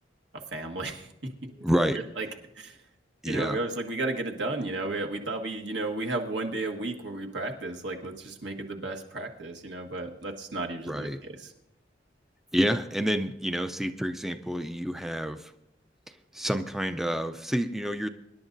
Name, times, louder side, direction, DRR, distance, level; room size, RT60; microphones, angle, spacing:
voice 1, 0.3-1.1 2.2-2.3 2.5-2.8 3.2-11.4, right 2 dB, 70° right, 2 dB, 1.6 m, -33 dB
voice 2, 1.6-2.0 3.2-3.6 10.9-11.2 12.5-15.5 16.1-18.1, equal, ahead, 8 dB, 0.4 m, -29 dB
24.5 x 11.0 x 2.6 m, 0.90 s
head